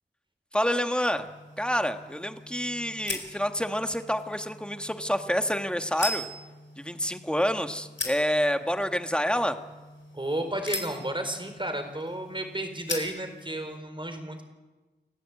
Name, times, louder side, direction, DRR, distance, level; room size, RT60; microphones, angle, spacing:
voice 1, 0.5-1.3 1.6-6.3 6.8-9.6, equal, 5° left, 7 dB, 1.7 m, -28 dB
sound 1, 1.1-13.8, left 2 dB, 85° left, 4.3 m, -40 dB
voice 2, 10.1-14.4, right 1 dB, 25° right, 6 dB, 4.4 m, -32 dB
29.5 x 16.0 x 8.6 m, 1.2 s
wide cardioid pair, 70°, 19 cm